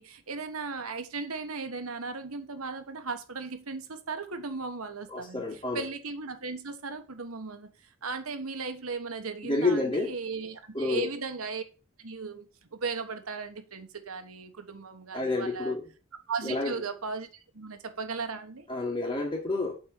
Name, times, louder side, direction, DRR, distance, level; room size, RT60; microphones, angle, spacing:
voice 1, 0.0-5.4 5.7-7.7 8.0-11.6 12.0-12.5 12.7-15.7 16.3-17.3 17.5-18.7, right 4 dB, 90° right, 1.3 m, -36 dB
voice 2, 5.1-5.8 9.4-10.1 10.7-11.1 15.1-15.8 16.4-16.7 18.7-19.7, left 2 dB, 25° left, 2.5 m, -29 dB
7.8 x 4.3 x 6.6 m
head